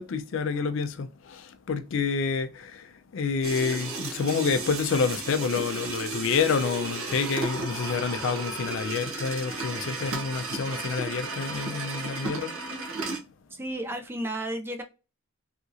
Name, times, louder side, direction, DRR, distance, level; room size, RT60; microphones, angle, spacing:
voice 1, 0.0-12.5, left 5 dB, 65° left, 0.4 m, -28 dB
sound 1, 3.4-13.2, right 3 dB, 85° right, 0.7 m, -34 dB
voice 2, 13.5-14.8, right 1 dB, 10° right, 0.3 m, -33 dB
2.8 x 2.7 x 2.4 m
head